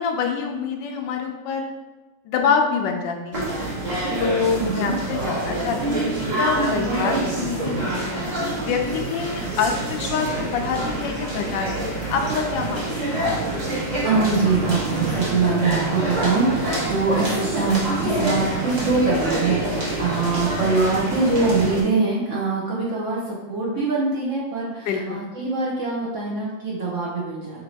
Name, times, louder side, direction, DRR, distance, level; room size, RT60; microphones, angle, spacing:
voice 1, 0.0-1.7 2.2-3.5 4.2-8.0 8.5-13.2 24.9-25.2, left 5 dB, 80° left, 4 dB, 1.2 m, -26 dB
sound 1, 3.3-21.8, right 2 dB, 30° right, 0.9 m, -26 dB
voice 2, 4.6-4.9 14.0-27.6, right 3 dB, 60° right, -5 dB, 0.8 m, -23 dB
4.3 x 2.7 x 4.0 m, 1.1 s
omnidirectional pair, 2.0 m